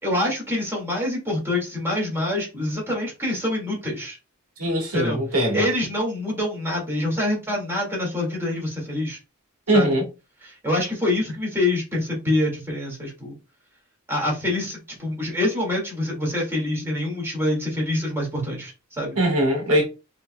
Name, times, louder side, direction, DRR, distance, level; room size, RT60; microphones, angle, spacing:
voice 1, 0.0-4.2 4.9-9.2 9.7-9.9 10.4-13.4 14.1-19.2, left 1 dB, 10° right, 2.0 m, -26 dB
voice 2, 4.6-5.7 9.7-10.0 19.2-19.9, right 1 dB, 90° right, 1.5 m, -21 dB
5.2 x 3.1 x 2.2 m
head